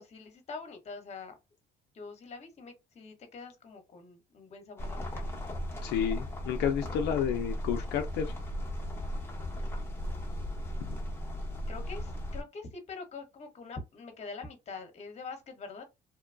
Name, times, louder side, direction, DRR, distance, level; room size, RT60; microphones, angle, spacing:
voice 1, 0.0-1.3 1.9-5.4 9.5-10.8 11.7-15.8, left 4 dB, 40° left, 1.0 m, -45 dB
sound 1, 4.8-12.4, equal, 15° left, 0.9 m, -36 dB
voice 2, 5.8-8.3 10.8-10.9, left 9 dB, 80° left, 0.4 m, -31 dB
2.9 x 2.2 x 2.5 m
cardioid pair, 110°, 17 cm